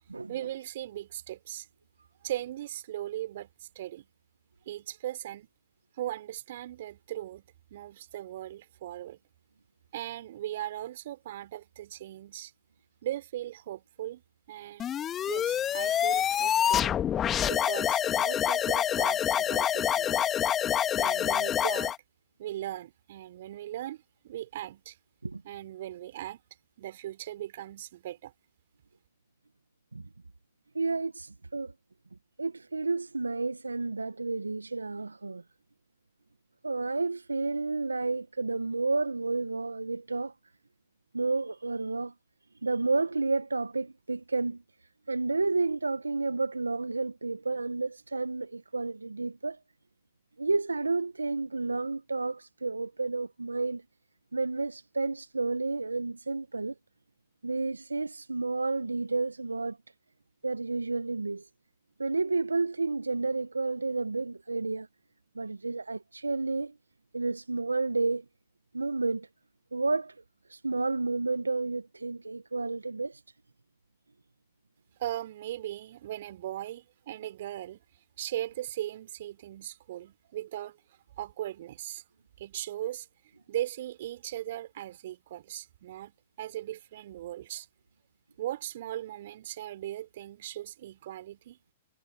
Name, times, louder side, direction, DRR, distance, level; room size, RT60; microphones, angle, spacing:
voice 1, 0.3-1.7 2.2-4.1 4.7-5.5 6.0-9.2 9.9-12.5 13.0-14.2 14.5-14.9 15.3-16.9 17.4-20.2 21.0-21.9 22.4-25.0 25.4-26.4 26.8-28.3 75.0-77.8 78.2-80.8 81.2-82.0 82.4-83.1 83.5-87.7 88.4-91.6, right 13 dB, 60° right, 3.9 m, -38 dB
sound 1, 14.8-22.0, left 10 dB, 25° left, 2.0 m, -27 dB
voice 2, 30.7-31.7 32.4-35.4 36.6-40.3 41.1-42.1 42.6-44.6 45.1-49.6 50.4-53.8 54.3-56.7 57.4-59.8 60.4-61.5 62.0-64.9 65.3-66.7 67.1-68.2 68.7-69.3 69.7-70.2 70.5-73.2, right 3 dB, 85° right, 1.4 m, -31 dB
figure-of-eight pair, 110°, 0 cm